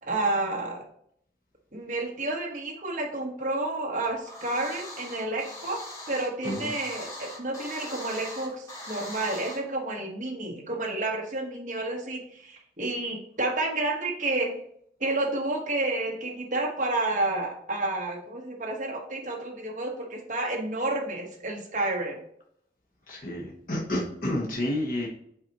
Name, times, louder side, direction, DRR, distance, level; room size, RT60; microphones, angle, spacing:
voice 1, 0.0-0.8 1.7-5.8 6.1-14.5 15.0-22.2, right 2 dB, 45° right, 0 dB, 1.2 m, -30 dB
sound 1, 4.0-9.6, left 1 dB, 20° left, 1.5 m, -41 dB
voice 2, 23.1-25.1, left 1 dB, 50° left, -2 dB, 1.0 m, -30 dB
7.6 x 4.2 x 2.9 m, 0.70 s
head